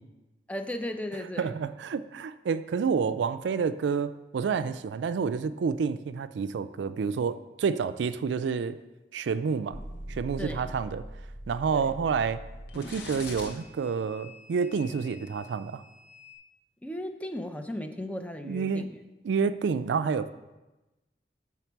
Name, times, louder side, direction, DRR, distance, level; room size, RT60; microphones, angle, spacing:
voice 1, 0.5-1.5 10.4-10.7 11.7-11.9 16.8-18.9, left 1 dB, 10° left, 6 dB, 0.5 m, -36 dB
voice 2, 1.4-8.8 9.1-9.8 10.1-11.1 11.5-12.4 12.7-15.8 18.4-18.9 19.2-20.3, right 5 dB, 85° right, 13 dB, 0.3 m, -29 dB
sound 1, 9.7-16.3, equal, 75° left, 1.2 m, -43 dB
7.1 x 5.8 x 4.5 m, 1.1 s
head